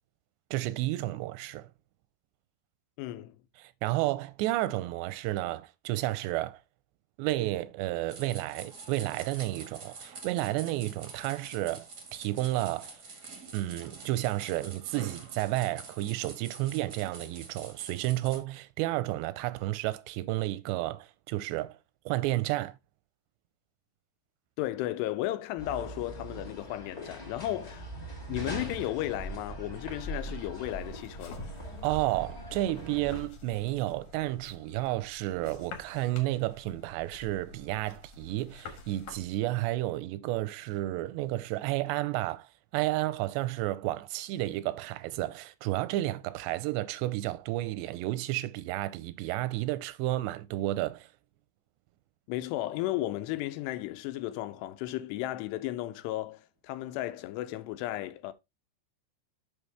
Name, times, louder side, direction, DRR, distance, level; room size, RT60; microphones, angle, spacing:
voice 1, 0.5-1.7 3.6-6.6 7.2-13.0 13.5-21.8 22.1-22.8 31.8-51.1, right 17 dB, 90° right, 2.8 m, -31 dB
voice 2, 3.0-3.4 24.6-27.9 28.3-31.5 52.3-58.3, left 15 dB, 85° left, 2.7 m, -34 dB
sound 1, 8.1-18.4, right 4 dB, 65° right, 1.0 m, -47 dB
sound 2, 25.6-33.3, right 1 dB, 30° left, 0.7 m, -41 dB
sound 3, 30.4-39.3, left 3 dB, 60° left, 2.6 m, -49 dB
7.2 x 6.2 x 3.3 m
omnidirectional pair, 4.9 m